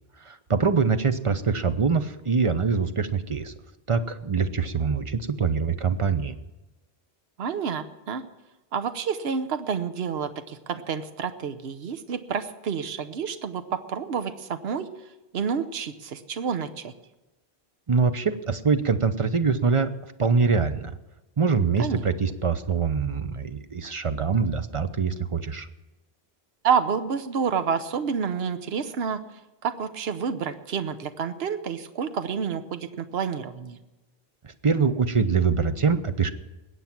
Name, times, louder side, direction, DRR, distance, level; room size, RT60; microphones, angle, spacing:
voice 1, 0.3-3.5 3.9-6.4 17.9-19.9 20.2-20.9 21.4-25.7 34.4-36.3, right 5 dB, 35° right, 10 dB, 0.7 m, -24 dB
voice 2, 7.4-8.2 8.7-14.9 15.3-16.9 21.8-22.0 26.6-29.2 29.6-33.8, right 6 dB, 75° right, 10 dB, 1.1 m, -29 dB
21.0 x 8.4 x 6.0 m, 1.1 s
omnidirectional pair, 1.1 m